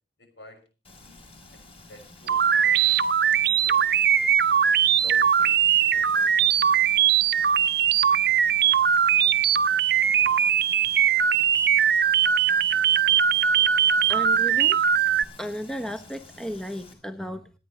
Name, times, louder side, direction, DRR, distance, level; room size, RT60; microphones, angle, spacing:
voice 1, 0.2-0.6 1.0-1.6 1.9-3.9 4.2-4.3 4.9-6.3, left 2 dB, 70° left, 6 dB, 6.2 m, -50 dB
Frying (food), 0.8-16.9, left 2 dB, 30° left, 4.2 m, -50 dB
sound 1, 2.3-15.2, right 8 dB, 55° right, 0.8 m, -20 dB
voice 2, 14.1-14.8 15.4-17.6, equal, 5° left, 8 dB, 0.9 m, -34 dB
27.0 x 9.7 x 3.1 m, 0.34 s
head